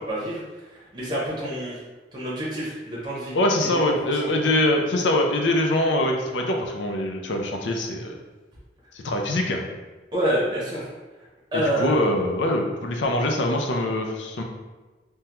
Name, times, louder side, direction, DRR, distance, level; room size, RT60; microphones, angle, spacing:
voice 1, 0.1-0.4 0.7-1.8 2.1-4.3 10.1-10.9 11.5-12.0, right 1 dB, 25° right, -7 dB, 0.7 m, -28 dB
voice 2, 3.3-8.1 9.0-9.7 11.5-14.4, left 1 dB, 85° left, 2 dB, 0.5 m, -23 dB
3.5 x 2.2 x 2.9 m, 1.2 s
head